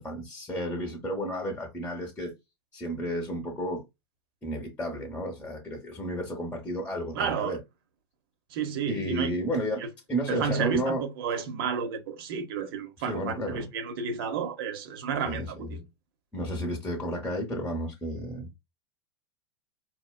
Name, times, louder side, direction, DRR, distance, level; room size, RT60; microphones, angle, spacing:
voice 1, 0.0-2.3 2.7-3.8 4.4-7.6 8.9-9.8 10.1-11.0 13.0-13.7 15.2-15.8 16.3-18.5, equal, 10° left, 1.0 m, -32 dB
voice 2, 7.1-7.6 8.5-9.3 10.3-15.8, right 6 dB, 60° right, 0.8 m, -31 dB
4.4 x 2.2 x 2.2 m
figure-of-eight pair, 90°, 14 cm